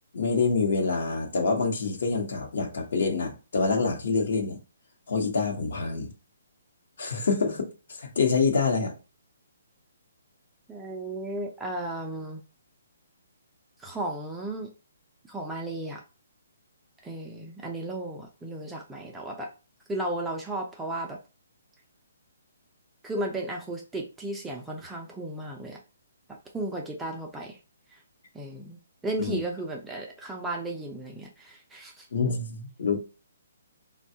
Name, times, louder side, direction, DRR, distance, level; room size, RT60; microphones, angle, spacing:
voice 1, 0.1-4.6 5.1-6.1 7.0-8.9 29.2-29.4 32.1-33.0, left 4 dB, 60° left, 0.9 m, -26 dB
voice 2, 10.7-12.4 13.8-14.7 15.3-16.0 17.0-19.5 19.9-21.2 23.0-25.8 26.5-27.6 27.9-28.0 28.3-32.1, right 1 dB, 5° right, 0.4 m, -34 dB
3.4 x 2.2 x 2.7 m
hypercardioid pair, 165°, 0 cm